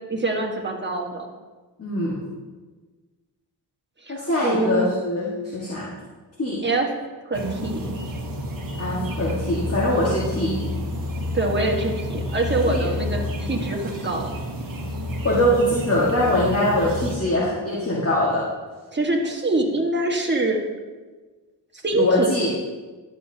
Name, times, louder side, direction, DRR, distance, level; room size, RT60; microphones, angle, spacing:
voice 1, 0.1-1.3 4.0-4.9 6.6-6.9 7.2-7.9 11.3-14.3 18.9-20.6 21.8-22.3, right 2 dB, 25° right, 0 dB, 1.5 m, -24 dB
voice 2, 1.8-2.2 4.1-6.0 6.4-6.6 8.8-10.6 12.7-12.9 15.2-18.5 21.9-22.5, left 1 dB, 35° left, -6 dB, 1.8 m, -22 dB
sound 1, 7.3-17.2, left 1 dB, 50° right, 1.2 m, -29 dB
11.5 x 6.6 x 2.8 m, 1.3 s
cardioid pair, 60°, 42 cm